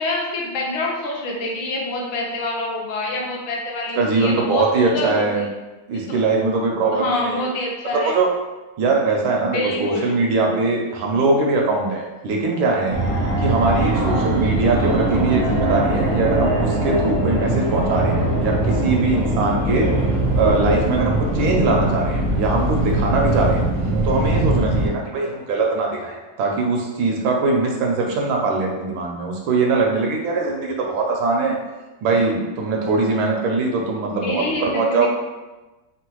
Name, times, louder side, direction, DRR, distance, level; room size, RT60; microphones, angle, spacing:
voice 1, 0.0-5.2 6.1-6.2 6.9-8.1 9.5-10.1 13.7-13.9 19.8-20.0 34.2-35.1, left 2 dB, 75° left, -1 dB, 1.3 m, -26 dB
voice 2, 4.0-5.4 5.9-7.5 7.9-8.3 8.8-13.0 13.4-19.9 20.4-23.6 24.0-31.6 32.0-35.1, right 3 dB, 75° right, 0 dB, 1.3 m, -21 dB
Fixed-wing aircraft airplane, 12.9-24.9, right 1 dB, 50° right, 0.7 m, -21 dB
3.6 x 2.2 x 2.9 m, 1.1 s
omnidirectional pair, 2.3 m